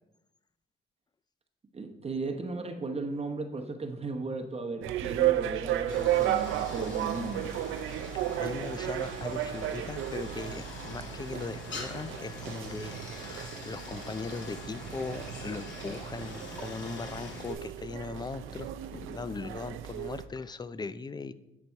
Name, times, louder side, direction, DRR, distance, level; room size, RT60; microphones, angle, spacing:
voice 1, 1.7-7.6, right 3 dB, 30° right, 4 dB, 0.9 m, -36 dB
sound 1, 4.8-20.2, right 12 dB, 85° right, 0.5 m, -34 dB
Stream, 5.9-17.5, left 3 dB, 65° left, 2.2 m, -44 dB
voice 2, 8.1-21.3, left 4 dB, 20° left, 14 dB, 0.5 m, -39 dB
10.0 x 5.2 x 4.5 m, 0.93 s
cardioid pair, 90°, 20 cm